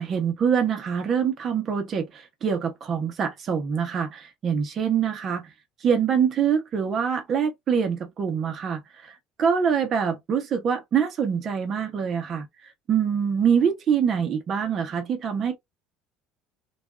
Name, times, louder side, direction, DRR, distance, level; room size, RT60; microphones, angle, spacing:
voice 1, 0.0-5.5 5.8-8.8 9.4-12.5 12.9-15.6, right 7 dB, 40° right, 0.8 m, -24 dB
2.5 x 2.3 x 2.2 m
cardioid pair, 130°, 0 cm